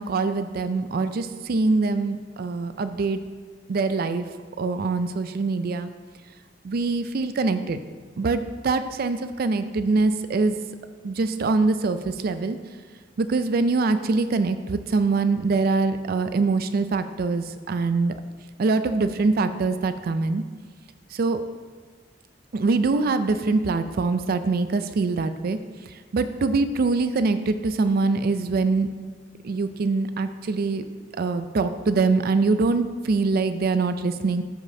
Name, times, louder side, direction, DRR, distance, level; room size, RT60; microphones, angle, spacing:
voice 1, 0.0-3.2 3.7-4.2 4.6-5.9 6.6-7.8 8.2-10.5 11.0-12.6 13.2-18.1 18.6-20.4 21.2-21.4 22.5-25.6 26.1-28.9 29.4-30.8 31.2-34.4, right 3 dB, 55° right, 11 dB, 0.4 m, -23 dB
12.0 x 5.0 x 2.7 m, 1.5 s
head